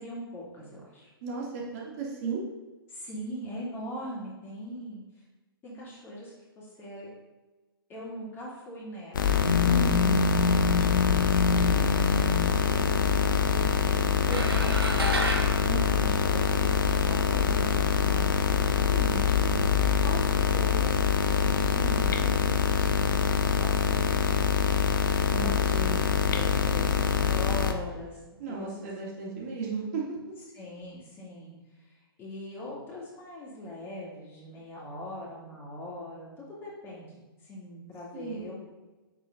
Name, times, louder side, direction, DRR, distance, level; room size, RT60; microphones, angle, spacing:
voice 1, 0.0-1.1 2.9-5.2 5.6-7.1 7.9-10.0 10.3-10.8 14.3-15.1 15.4-18.4 20.0-24.4 25.0-28.2 28.5-28.7 30.5-31.5 31.8-36.3 36.6-38.6, equal, 15° left, -5 dB, 2.6 m, -41 dB
voice 2, 1.2-2.4 9.6-10.2 15.6-16.2 18.9-19.6 25.3-26.1 28.4-30.0 38.1-38.5, right 4 dB, 40° right, -4 dB, 2.4 m, -35 dB
sound 1, 9.1-27.7, left 6 dB, 55° left, 0.8 m, -24 dB
sound 2, 14.3-16.9, right 1 dB, 80° right, 1.4 m, -32 dB
7.5 x 6.7 x 3.8 m, 1.2 s
figure-of-eight pair, 120°, 13 cm